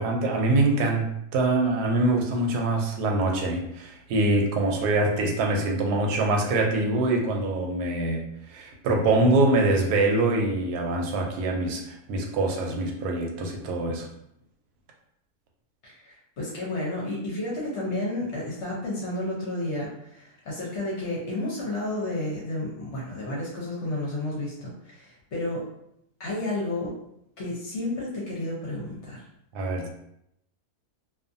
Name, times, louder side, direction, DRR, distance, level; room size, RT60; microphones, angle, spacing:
voice 1, 0.0-14.1 29.5-29.9, right 2 dB, 90° right, 1 dB, 1.1 m, -24 dB
voice 2, 15.8-25.7 26.2-26.9 27.4-29.2, left 1 dB, 60° left, -4 dB, 0.9 m, -31 dB
2.5 x 2.5 x 2.5 m, 0.77 s
omnidirectional pair, 1.6 m